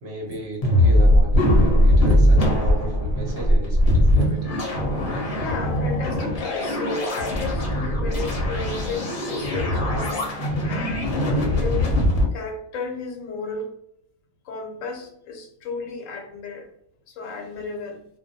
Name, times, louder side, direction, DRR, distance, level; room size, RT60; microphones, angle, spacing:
voice 1, 0.0-4.6, right 2 dB, 60° right, -2 dB, 1.0 m, -35 dB
sound 1, 0.6-12.2, left 1 dB, 50° left, 0.8 m, -20 dB
voice 2, 5.4-12.0 12.3-13.7 14.4-16.7 17.1-18.0, left 4 dB, 80° left, 2 dB, 1.0 m, -34 dB
2.3 x 2.2 x 2.6 m, 0.72 s
omnidirectional pair, 1.3 m